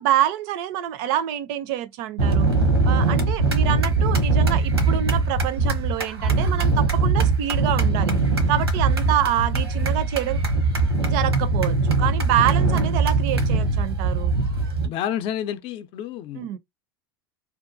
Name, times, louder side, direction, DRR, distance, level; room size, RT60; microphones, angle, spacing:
voice 1, 0.0-2.5 2.9-8.1 8.5-10.4 11.0-14.3 16.4-16.6, right 11 dB, 55° right, 0.5 m, -26 dB
sound 1, 2.2-14.9, right 3 dB, 90° right, 0.9 m, -21 dB
voice 2, 14.8-16.6, left 10 dB, 45° left, 0.5 m, -30 dB
2.8 x 2.2 x 2.5 m
hypercardioid pair, 80°, 13 cm